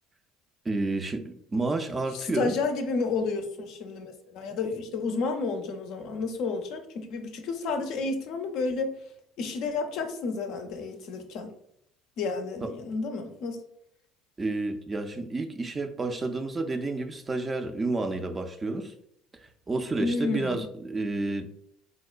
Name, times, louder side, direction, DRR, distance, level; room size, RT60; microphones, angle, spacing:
voice 1, 0.7-2.5 12.6-12.7 14.4-18.9 19.7-21.5, right 3 dB, 25° right, 0.3 m, -30 dB
voice 2, 2.1-8.9 9.4-11.5 12.2-13.6 20.0-20.6, left 4 dB, 60° left, 0.4 m, -31 dB
3.7 x 2.1 x 2.4 m
hypercardioid pair, 65°, 0 cm